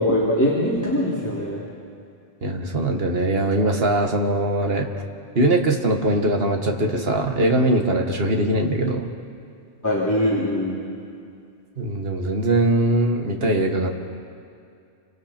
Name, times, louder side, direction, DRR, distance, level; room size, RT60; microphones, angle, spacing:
voice 1, 0.0-1.6 9.8-10.8, left 1 dB, 15° left, -7 dB, 3.1 m, -22 dB
voice 2, 2.4-4.9 5.4-9.1 11.8-13.9, right 1 dB, 70° right, 3 dB, 1.9 m, -21 dB
28.5 x 25.0 x 4.4 m, 2.4 s
omnidirectional pair, 1.0 m